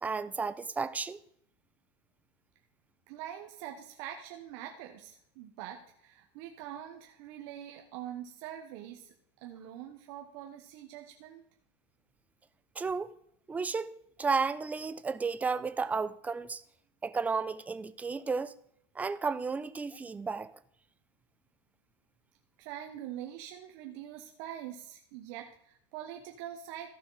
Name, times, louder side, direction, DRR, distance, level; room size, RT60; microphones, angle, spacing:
voice 1, 0.0-1.2 12.8-13.1 13.5-16.6 17.0-18.5 19.0-20.5, right 4 dB, 10° right, 0.4 m, -33 dB
voice 2, 3.1-9.1 9.4-11.4 22.6-26.9, right 11 dB, 60° right, 1.0 m, -44 dB
14.0 x 5.9 x 4.0 m
supercardioid pair, 130°, 15 cm